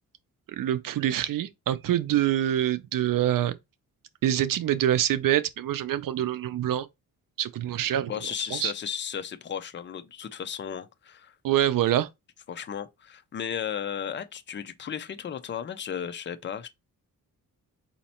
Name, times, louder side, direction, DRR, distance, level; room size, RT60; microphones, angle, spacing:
voice 1, 0.5-3.5 4.2-6.9 7.4-8.1 8.5-8.7 11.4-12.1, right 11 dB, 65° right, 0.6 m, -25 dB
voice 2, 8.1-11.3 12.5-16.7, left 8 dB, 30° left, 0.5 m, -34 dB
4.1 x 2.8 x 4.2 m
cardioid pair, 105°, 36 cm